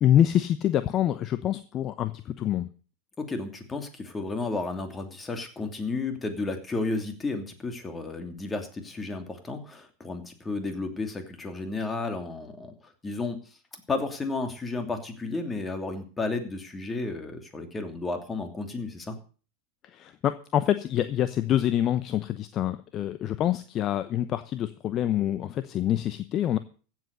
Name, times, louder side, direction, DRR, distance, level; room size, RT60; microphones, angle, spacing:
voice 1, 0.0-2.7 19.9-26.6, left 11 dB, 35° left, 12 dB, 0.9 m, -26 dB
voice 2, 3.2-12.7 13.0-13.4 13.9-19.2, left 3 dB, 15° left, 6 dB, 2.8 m, -32 dB
15.5 x 7.7 x 6.7 m, 0.40 s
hypercardioid pair, 90°, 0 cm